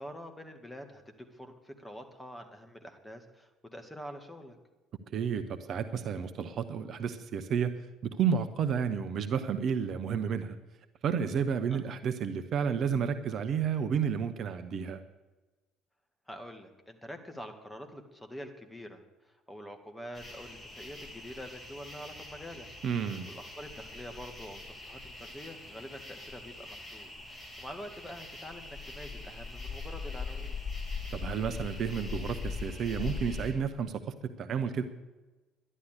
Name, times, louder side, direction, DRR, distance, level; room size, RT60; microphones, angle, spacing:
voice 1, 0.0-4.6 11.7-11.9 16.3-19.0 19.2-22.7 23.3-30.6, equal, 10° left, 5 dB, 2.1 m, -46 dB
voice 2, 5.1-7.7 8.2-10.5 11.0-15.0 22.8-23.3 31.1-34.8, right 7 dB, 50° right, 9 dB, 0.9 m, -31 dB
sound 1, 20.1-33.5, left 4 dB, 25° left, 3.4 m, -41 dB
11.5 x 11.0 x 6.8 m, 1.1 s
figure-of-eight pair, 55°, 0 cm